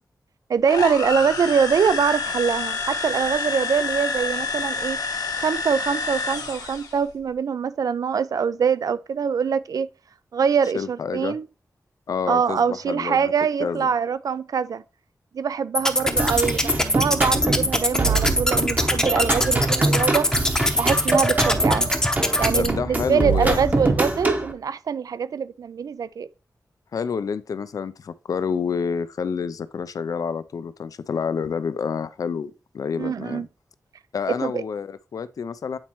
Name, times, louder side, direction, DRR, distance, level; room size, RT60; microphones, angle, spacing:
voice 1, 0.5-5.0 5.4-9.9 10.3-11.4 12.3-14.8 15.3-20.3 20.8-21.9 22.4-26.3 33.0-33.5 34.4-34.6, right 6 dB, 70° right, 0.4 m, -24 dB
sound 1, 0.6-7.0, left 4 dB, 90° left, 1.1 m, -28 dB
voice 2, 10.7-11.4 12.1-13.3 13.6-13.9 22.5-23.9 26.9-33.4 34.1-35.8, left 6 dB, 70° left, 0.4 m, -28 dB
sound 2, 15.7-22.7, left 1 dB, 10° left, 0.7 m, -23 dB
sound 3, 16.2-24.5, right 2 dB, 25° right, 0.9 m, -24 dB
8.8 x 4.3 x 3.0 m
wide cardioid pair, 150°, 6 cm